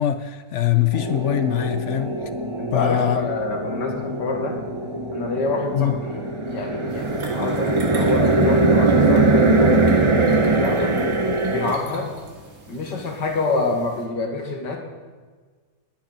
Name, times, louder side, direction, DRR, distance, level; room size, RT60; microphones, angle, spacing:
voice 1, 0.0-2.2 2.7-3.3 5.7-6.0, left 11 dB, 65° left, 0.7 m, -22 dB
sound 1, 0.9-11.7, right 2 dB, 35° right, 0.5 m, -21 dB
voice 2, 2.6-4.6 5.1-10.9 11.5-12.1 12.7-14.8, left 3 dB, 85° left, 2.4 m, -27 dB
sound 2, 6.9-14.1, right 3 dB, 55° right, 2.2 m, -42 dB
19.5 x 10.5 x 4.0 m
omnidirectional pair, 1.8 m